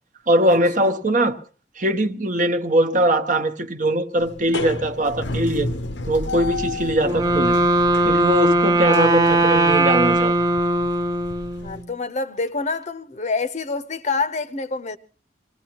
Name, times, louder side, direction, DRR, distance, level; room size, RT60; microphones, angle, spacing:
voice 1, 0.3-1.4 1.8-5.7 6.1-7.5 8.0-10.4, right 1 dB, 45° right, 0.9 m, -21 dB
sound 1, 4.2-11.8, left 2 dB, 85° left, 0.8 m, -32 dB
Wind instrument woodwind instrument, 7.0-11.9, right 2 dB, 20° right, 0.8 m, -19 dB
voice 2, 11.6-15.0, left 4 dB, 40° left, 0.7 m, -26 dB
25.0 x 18.5 x 2.9 m
head